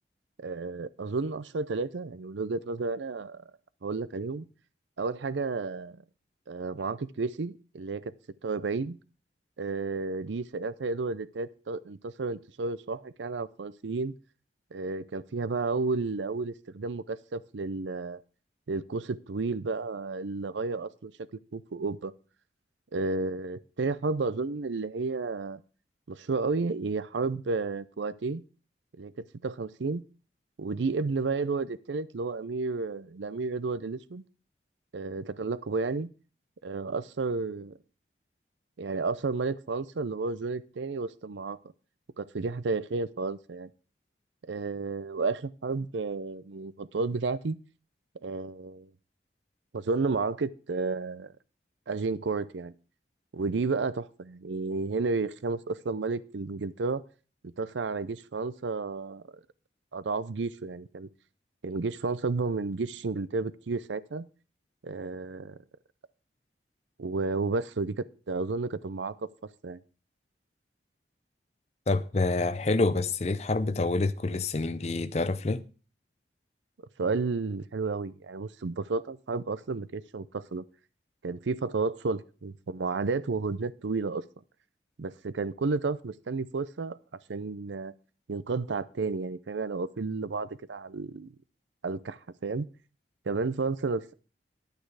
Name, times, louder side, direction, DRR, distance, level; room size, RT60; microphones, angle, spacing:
voice 1, 0.4-3.4 3.8-4.5 5.0-6.0 6.5-8.1 8.4-9.0 9.6-14.1 14.7-18.2 18.7-21.1 21.5-22.1 22.9-25.6 26.1-28.4 29.0-29.1 29.4-30.0 30.6-34.2 34.9-36.1 36.6-37.8 38.8-41.6 42.2-43.7 44.4-47.6 48.2-48.9 49.7-51.3 51.9-52.7 53.3-57.0 57.4-59.2 59.9-61.1 61.6-64.3 64.8-65.6 67.0-69.2 69.6-69.8 77.0-80.6 81.2-84.2 85.0-87.0 87.3-87.9 88.3-91.3 91.8-92.7 93.3-94.1, right 3 dB, 85° right, 0.6 m, -32 dB
voice 2, 71.9-75.6, left 3 dB, 35° left, 0.5 m, -27 dB
10.5 x 9.0 x 4.7 m
head